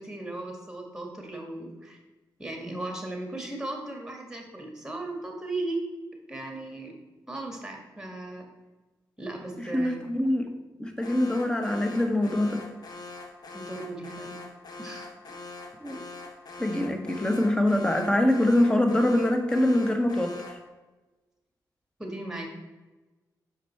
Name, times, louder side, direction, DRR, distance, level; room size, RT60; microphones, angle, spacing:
voice 1, 0.0-2.0 2.4-5.8 6.3-6.9 7.3-8.5 9.2-10.0 13.5-14.4 14.8-15.1 22.0-22.5, right 2 dB, 10° right, 1 dB, 2.0 m, -36 dB
voice 2, 9.7-10.5 10.8-12.6 15.8-16.0 16.6-20.3, left 1 dB, 10° left, 4 dB, 1.2 m, -24 dB
Alarm, 11.0-20.7, left 3 dB, 60° left, 1.1 m, -43 dB
6.3 x 5.0 x 4.5 m, 1.2 s
cardioid pair, 70°, 8 cm